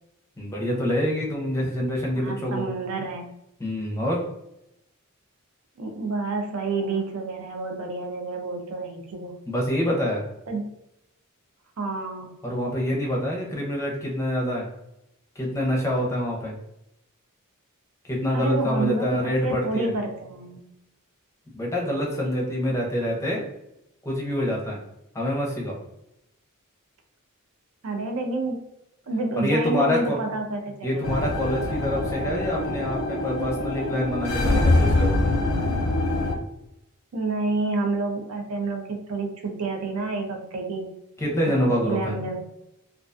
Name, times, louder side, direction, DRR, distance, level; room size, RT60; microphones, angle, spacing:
voice 1, 0.4-2.6 3.6-4.3 9.5-10.2 12.4-14.7 15.4-16.5 18.0-19.9 21.5-23.4 24.0-24.8 25.1-25.8 29.4-30.2 30.8-35.1 41.2-42.2, equal, 15° left, -2 dB, 0.5 m, -26 dB
voice 2, 2.2-3.3 5.8-9.3 10.5-10.6 11.8-12.3 18.3-20.7 27.8-28.6 29.1-31.1 37.1-40.9 41.5-42.4, right 3 dB, 70° right, 3 dB, 0.5 m, -29 dB
sound 1, 31.0-36.3, left 2 dB, 80° left, 0.5 m, -24 dB
2.3 x 2.2 x 2.5 m, 0.85 s
head